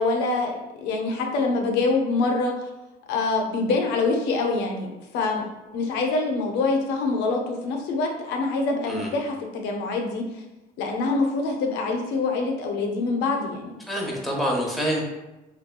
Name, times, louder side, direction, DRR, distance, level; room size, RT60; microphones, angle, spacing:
voice 1, 0.0-2.5 3.1-4.9 5.1-10.2 10.8-13.7, left 3 dB, 85° left, 2 dB, 0.5 m, -25 dB
voice 2, 13.9-15.0, equal, ahead, -3 dB, 0.6 m, -26 dB
2.8 x 2.2 x 2.2 m, 1.0 s
cardioid pair, 110°, 17 cm